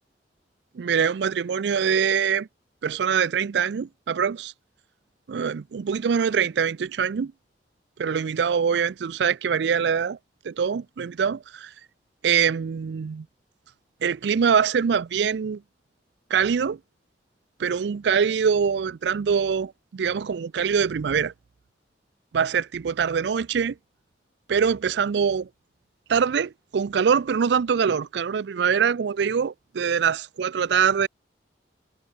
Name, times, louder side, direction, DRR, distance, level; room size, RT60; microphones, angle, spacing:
voice 1, 0.7-2.5 2.8-4.5 5.3-7.3 8.0-10.2 10.4-11.7 12.2-13.3 14.0-15.6 16.3-16.8 17.6-21.3 22.3-23.8 24.5-25.5 26.1-31.1, right 6 dB, 70° right, 0.4 m, -24 dB
head